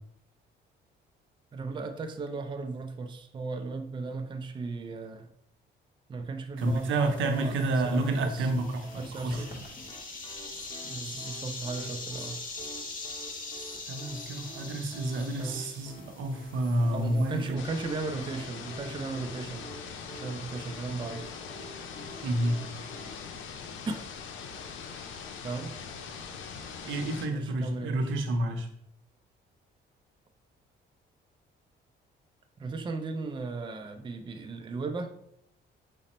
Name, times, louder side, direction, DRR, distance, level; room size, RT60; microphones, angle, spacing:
voice 1, 1.5-5.3 6.1-8.5 9.0-9.5 10.8-12.4 15.4-15.6 16.9-19.7 20.1-21.4 23.9-24.0 25.4-25.7 27.3-28.1 32.6-35.1, right 4 dB, 25° right, 7 dB, 0.4 m, -36 dB
sound 1, 6.6-17.5, left 3 dB, 45° left, 1.3 m, -43 dB
voice 2, 6.6-9.4 13.9-17.6 22.2-22.6 26.9-28.7, right 1 dB, 80° right, 5 dB, 0.7 m, -29 dB
sound 2, 8.4-23.1, equal, 25° left, 0.8 m, -49 dB
sound 3, 17.6-27.3, left 6 dB, 75° left, 0.6 m, -42 dB
4.9 x 2.1 x 4.1 m, 0.73 s
cardioid pair, 90°, 20 cm